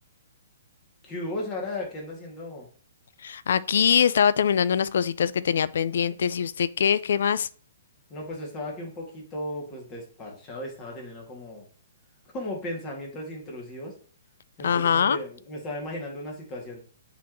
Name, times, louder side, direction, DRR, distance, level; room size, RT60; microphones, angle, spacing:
voice 1, 1.0-2.7 8.1-11.7 12.3-13.9 14.6-16.8, left 1 dB, 25° left, 2.1 m, -36 dB
voice 2, 3.2-7.5 14.6-15.2, left 7 dB, 60° left, 0.3 m, -23 dB
8.3 x 3.8 x 3.0 m
figure-of-eight pair, 120°, 0 cm